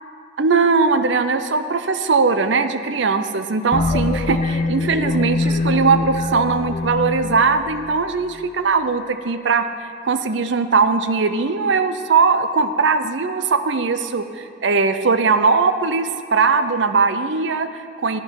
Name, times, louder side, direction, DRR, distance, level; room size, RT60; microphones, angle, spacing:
voice 1, 0.4-9.7 10.0-18.2, right 4 dB, 65° right, 10 dB, 0.6 m, -19 dB
sound 1, 3.7-8.4, left 3 dB, 35° left, 0.6 m, -24 dB
13.0 x 10.0 x 4.7 m, 2.3 s
head